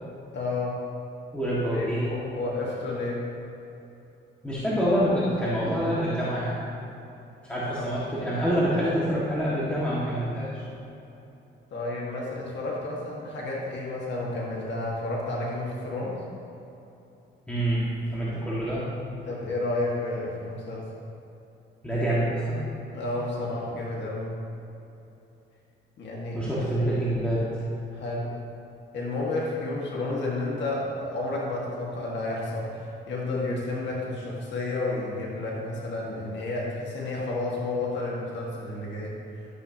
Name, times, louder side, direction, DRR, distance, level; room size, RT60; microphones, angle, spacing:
voice 1, 0.3-0.8 1.7-3.3 7.6-7.9 11.7-16.2 19.2-20.8 22.9-24.3 26.0-26.4 27.9-28.3 28.9-39.2, left 2 dB, 65° left, -4 dB, 1.7 m, -31 dB
voice 2, 1.3-2.1 4.4-6.6 7.4-10.6 17.5-18.8 21.8-22.6 26.3-27.6, equal, 5° left, -9 dB, 1.8 m, -26 dB
12.0 x 7.3 x 2.8 m, 2.9 s
cardioid pair, 90°, 20 cm